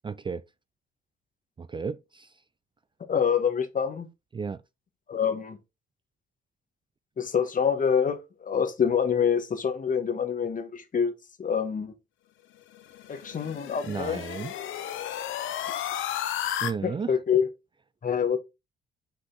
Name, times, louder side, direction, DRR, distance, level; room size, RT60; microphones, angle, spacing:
voice 1, 0.0-0.4 1.6-2.3 4.3-4.6 13.9-14.5 16.6-17.2, right 5 dB, 25° right, 0.4 m, -33 dB
voice 2, 3.1-4.1 5.1-5.6 7.2-11.1 11.4-11.9 13.1-14.2 15.7-15.8 16.8-17.5 18.0-18.4, left 7 dB, 40° left, 1.5 m, -26 dB
sound 1, 12.7-16.7, left 11 dB, 80° left, 0.9 m, -33 dB
5.8 x 5.3 x 3.8 m
cardioid pair, 90°, 20 cm